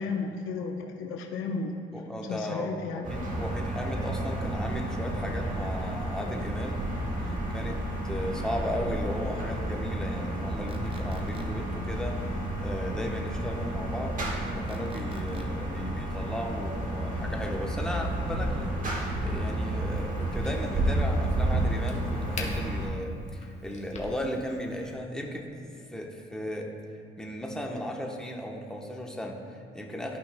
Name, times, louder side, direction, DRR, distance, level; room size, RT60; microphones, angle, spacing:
voice 1, 0.0-1.7 2.2-3.1, left 4 dB, 90° left, 3 dB, 0.7 m, -33 dB
voice 2, 1.9-6.8 7.2-12.2 12.6-14.2 14.5-25.6 25.9-26.7 27.2-30.2, equal, 5° left, 0 dB, 0.9 m, -36 dB
sound 1, 3.0-22.9, right 1 dB, 40° right, 1.4 m, -31 dB
sound 2, 10.7-11.4 14.7-15.4, right 3 dB, 25° right, 0.8 m, -49 dB
Crack, 19.9-24.9, left 1 dB, 35° left, 1.2 m, -44 dB
13.0 x 5.5 x 2.2 m, 2.5 s
cardioid pair, 90°, 20 cm